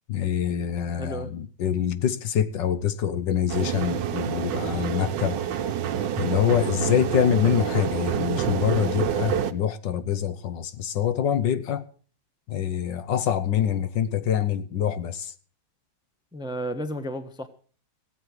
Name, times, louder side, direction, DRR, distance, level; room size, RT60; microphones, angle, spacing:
voice 1, 0.1-5.4 6.2-11.8 12.5-15.3, left 9 dB, 70° left, 1.5 m, -25 dB
voice 2, 1.0-1.3 16.3-17.5, equal, 5° right, 0.9 m, -32 dB
sound 1, 3.5-9.5, right 9 dB, 70° right, 1.5 m, -27 dB
17.0 x 8.3 x 7.8 m
omnidirectional pair, 2.2 m